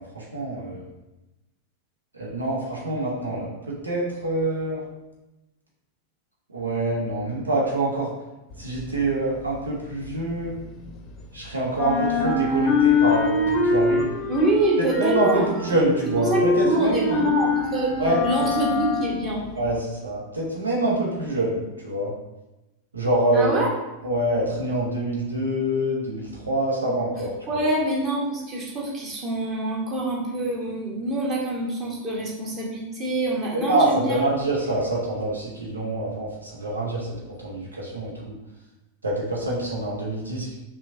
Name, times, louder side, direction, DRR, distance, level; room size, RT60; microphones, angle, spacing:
voice 1, 0.1-0.8 2.1-4.8 6.5-8.1 8.6-10.5 11.3-14.2 15.0-17.0 18.0-18.2 19.6-22.1 22.9-23.5 24.0-27.6 33.7-37.2 37.4-38.3 39.0-40.5, right 1 dB, 75° right, -4 dB, 0.9 m, -25 dB
sound 1, 8.5-11.4 11.7-19.8, left 3 dB, 30° left, 0.6 m, -24 dB
voice 2, 14.3-17.9 18.2-19.4 23.3-23.7 26.8-26.9 27.5-34.3, right 2 dB, 30° right, -4 dB, 1.3 m, -26 dB
5.7 x 2.3 x 2.7 m, 1.0 s
figure-of-eight pair, 90°, 0 cm